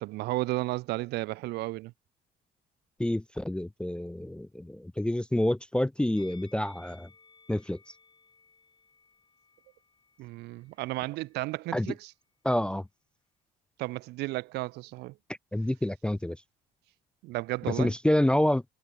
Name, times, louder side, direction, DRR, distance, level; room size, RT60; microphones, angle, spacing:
voice 1, 0.0-1.9 10.2-12.1 13.8-15.1 17.2-17.9, right 19 dB, 85° right, 0.7 m, -33 dB
voice 2, 3.0-7.1 7.5-7.8 11.7-11.9 12.4-12.8 15.5-16.4 17.8-18.7, left 1 dB, 5° left, 0.5 m, -28 dB
Musical instrument, 6.1-11.4 11.6-11.9, left 4 dB, 25° left, 5.2 m, -60 dB
cardioid pair, 110°, 17 cm